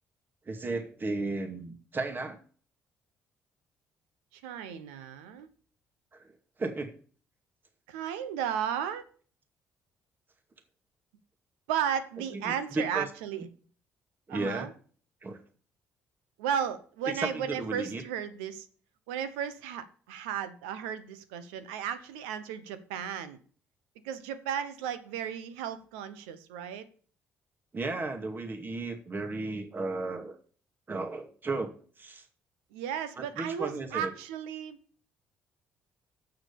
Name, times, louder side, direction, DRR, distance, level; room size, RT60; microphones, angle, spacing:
voice 1, 0.5-2.4 6.1-6.3 6.6-6.9 12.3-13.1 14.3-14.7 15.2-15.4 17.1-18.0 27.7-30.4 30.9-32.2 33.2-34.1, right 2 dB, 35° right, 2.2 m, -34 dB
voice 2, 4.3-5.5 7.9-9.0 11.7-13.5 14.3-14.7 16.4-18.7 19.1-23.4 24.0-26.9 32.7-34.8, right 9 dB, 85° right, 1.0 m, -34 dB
7.4 x 6.1 x 6.8 m
hypercardioid pair, 55°, 6 cm